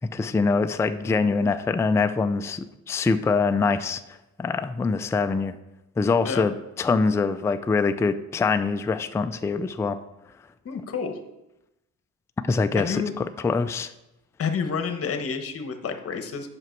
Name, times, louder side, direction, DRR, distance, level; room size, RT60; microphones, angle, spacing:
voice 1, 0.1-5.6 6.0-10.0 12.4-13.9, left 4 dB, 10° left, 9 dB, 0.3 m, -24 dB
voice 2, 10.6-11.2 12.7-13.1 14.4-16.5, left 6 dB, 40° left, 7 dB, 1.1 m, -29 dB
8.0 x 6.1 x 4.5 m, 0.93 s
cardioid pair, 95°, 35 cm